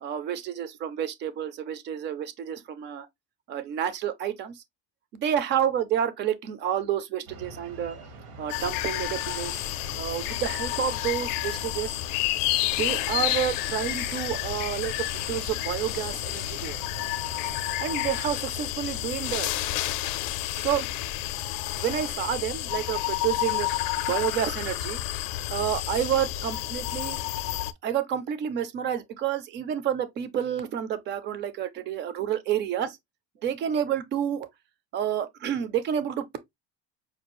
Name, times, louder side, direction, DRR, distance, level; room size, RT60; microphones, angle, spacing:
voice 1, 0.0-3.1 3.5-4.6 5.1-8.0 8.4-9.6 9.9-12.0 12.6-16.8 17.8-19.5 20.6-20.9 21.7-23.7 24.0-25.0 25.5-27.2 27.8-33.0 33.4-34.5 34.9-36.4, right 9 dB, 30° right, 0.4 m, -29 dB
sound 1, 7.3-18.5, right 3 dB, 70° right, 1.2 m, -46 dB
sound 2, 8.5-27.7, left 15 dB, 60° left, 0.5 m, -30 dB
5.2 x 2.3 x 2.9 m
cardioid pair, 180°, 37 cm